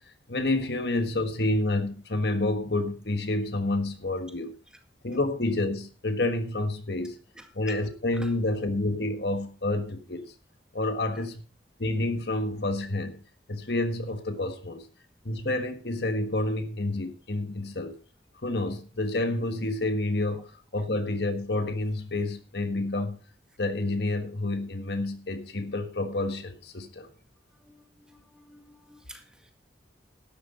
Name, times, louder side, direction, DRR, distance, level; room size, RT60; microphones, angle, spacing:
voice 1, 0.3-4.5 5.0-7.2 7.5-10.3 10.7-11.4 11.8-13.2 13.5-14.9 15.2-18.0 18.4-20.5 20.7-23.2 23.6-27.1, left 2 dB, 65° left, 1.5 m, -29 dB
voice 2, 7.3-7.8 8.1-8.3 11.1-11.2 27.5-29.5, equal, 5° right, 1.9 m, -51 dB
12.0 x 10.5 x 4.2 m
head